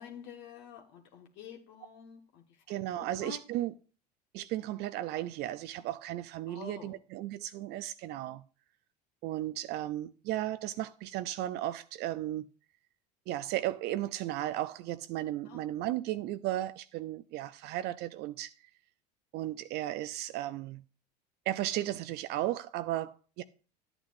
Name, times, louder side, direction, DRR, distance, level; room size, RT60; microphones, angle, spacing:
voice 1, 0.0-2.4 2.9-3.4 6.5-6.9 15.4-15.6, left 7 dB, 60° left, 1.4 m, -48 dB
voice 2, 2.7-3.7 4.3-8.4 9.2-12.5 13.3-18.5 19.3-20.8 21.5-23.4, right 14 dB, 50° right, 0.5 m, -35 dB
11.0 x 8.8 x 2.5 m
hypercardioid pair, 80°, 21 cm